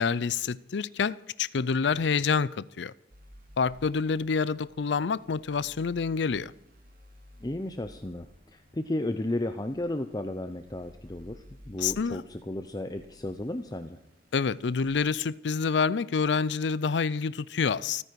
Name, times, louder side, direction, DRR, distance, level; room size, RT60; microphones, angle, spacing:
voice 1, 0.0-2.9 3.6-6.5 11.8-12.2 14.3-18.0, left 5 dB, 90° left, 0.5 m, -27 dB
sound 1, 3.1-15.0, equal, 55° right, 2.6 m, -55 dB
voice 2, 7.4-8.3 8.5-14.0, left 1 dB, 20° left, 0.7 m, -33 dB
29.5 x 9.9 x 4.7 m
head